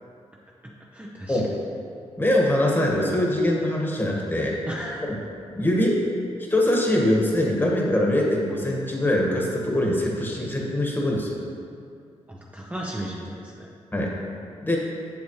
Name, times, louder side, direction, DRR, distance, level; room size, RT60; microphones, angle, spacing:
voice 1, 0.9-1.4 4.7-5.1 12.3-13.7, right 1 dB, 10° right, -3 dB, 0.7 m, -35 dB
voice 2, 2.2-4.6 5.5-6.0 6.5-11.3 13.9-14.1 14.6-14.8, left 1 dB, 15° left, -2 dB, 1.6 m, -23 dB
7.3 x 6.9 x 3.2 m, 2.3 s
cardioid pair, 65°, 12 cm